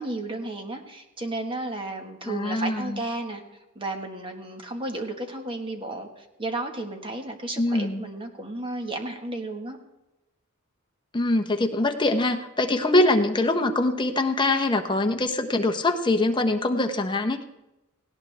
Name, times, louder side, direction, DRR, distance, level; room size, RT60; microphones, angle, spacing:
voice 1, 0.0-3.4 3.7-9.8, right 2 dB, 25° right, 4 dB, 1.5 m, -33 dB
voice 2, 2.2-3.0 7.6-8.1 11.1-17.4, left 2 dB, 20° left, 5 dB, 1.0 m, -23 dB
17.5 x 17.0 x 3.4 m, 0.96 s
head